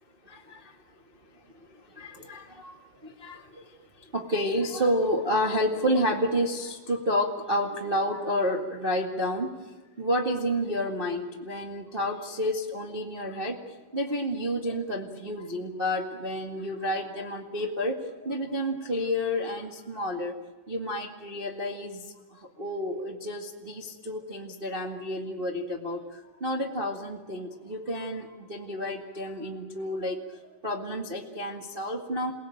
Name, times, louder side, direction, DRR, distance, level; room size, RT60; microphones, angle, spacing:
voice 1, 0.2-0.8 1.3-9.5 10.0-13.6 13.9-20.3 20.7-22.0 22.3-32.3, equal, 50° right, 1 dB, 0.6 m, -30 dB
28.5 x 18.5 x 9.1 m, 1.2 s
omnidirectional pair, 4.9 m